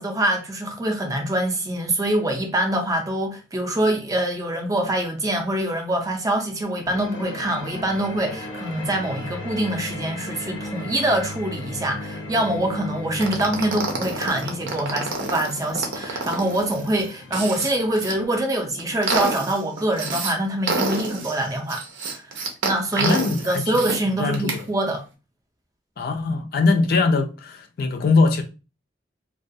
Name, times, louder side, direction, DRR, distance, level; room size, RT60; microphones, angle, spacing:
voice 1, 0.0-22.4 22.6-25.0, right 1 dB, 20° right, 0.4 m, -25 dB
sound 1, 6.8-18.3, left 2 dB, 90° left, 0.7 m, -36 dB
sound 2, 13.2-18.1 18.6-20.3 20.7-24.0 24.3-24.6, right 3 dB, 75° right, 0.6 m, -28 dB
voice 2, 23.0-23.6 24.2-24.6 26.0-28.4, left 3 dB, 50° left, 0.3 m, -21 dB
2.3 x 2.2 x 2.6 m
head